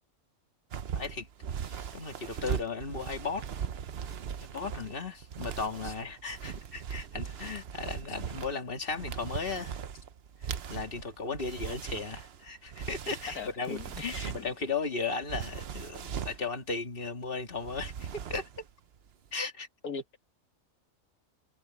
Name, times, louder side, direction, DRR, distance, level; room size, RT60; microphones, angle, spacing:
heavy fabric dancing, 0.7-14.7 15.2-16.5 17.6-18.7 19.0-19.3, right 8 dB, 50° right, 0.9 m, -39 dB
voice 1, 1.0-1.3 1.7-3.4 4.4-9.8 10.7-18.5 19.3-19.7, left 4 dB, 40° left, 2.4 m, -36 dB
voice 2, 13.3-14.3 19.8-20.2, left 5 dB, 80° left, 2.0 m, -40 dB
omnidirectional pair, 1.5 m